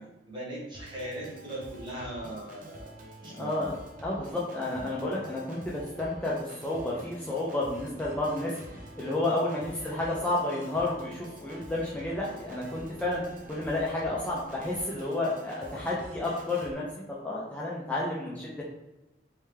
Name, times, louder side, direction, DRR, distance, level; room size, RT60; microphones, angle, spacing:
voice 1, 0.0-2.9 3.2-3.7 9.1-9.6, right 1 dB, 25° right, -6 dB, 1.3 m, -40 dB
Organ, 0.7-16.7, right 1 dB, 50° right, 0.7 m, -47 dB
voice 2, 3.4-3.7 4.0-13.2 13.5-18.6, left 2 dB, 10° left, -5 dB, 0.5 m, -31 dB
3.4 x 3.2 x 3.2 m, 1.0 s
head